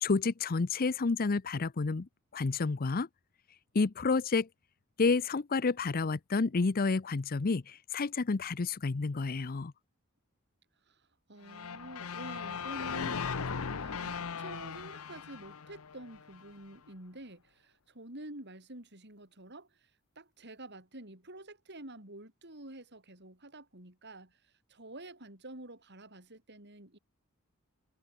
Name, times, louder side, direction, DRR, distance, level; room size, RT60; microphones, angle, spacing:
voice 1, 0.0-3.1 3.7-4.5 5.0-9.7, left 4 dB, 45° left, 0.6 m, -30 dB
voice 2, 10.9-19.9 20.2-27.0, right 1 dB, 55° right, 7.5 m, -48 dB
sound 1, 11.5-16.5, left 6 dB, 85° left, 0.8 m, -38 dB
head